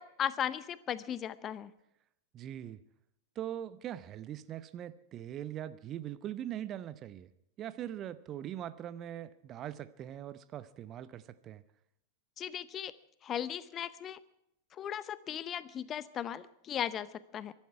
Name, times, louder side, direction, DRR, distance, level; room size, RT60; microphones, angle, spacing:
voice 1, 0.0-1.7 12.4-12.9 13.2-14.2 14.8-17.5, left 9 dB, 30° left, 17 dB, 0.7 m, -37 dB
voice 2, 2.3-2.8 3.4-7.3 7.6-11.6, right 11 dB, 30° right, 15 dB, 0.8 m, -41 dB
23.5 x 12.0 x 4.7 m, 0.80 s
figure-of-eight pair, 90°, 0 cm